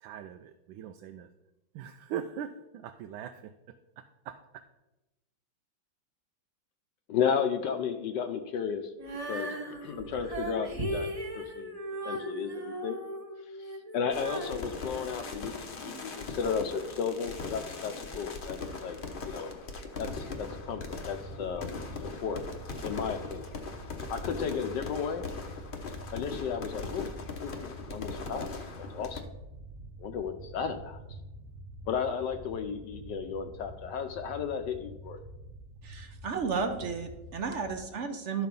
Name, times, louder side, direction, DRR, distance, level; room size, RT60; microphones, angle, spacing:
voice 1, 0.0-1.3 1.7-3.5 4.0-4.4, right 9 dB, 90° right, 7 dB, 1.4 m, -40 dB
voice 2, 7.1-8.9 9.3-11.1 11.3-11.8 12.0-13.0 13.6-19.0 19.2-19.6 20.0-21.8 22.2-22.4 22.8-23.5 24.1-25.3 26.1-27.1 27.4-27.6 27.9-28.5 28.9-29.2 30.0-31.0 31.9-35.2, left 7 dB, 70° left, 7 dB, 1.2 m, -33 dB
Female singing, 9.0-16.0, right 1 dB, 25° right, 1.0 m, -38 dB
sound 1, 14.1-29.2, left 3 dB, 40° left, 0.7 m, -40 dB
sound 2, 20.0-37.9, right 1 dB, 40° right, 1.7 m, -47 dB
voice 3, 35.8-38.5, right 5 dB, 55° right, 7 dB, 0.8 m, -33 dB
12.5 x 4.8 x 5.3 m, 0.99 s
omnidirectional pair, 2.1 m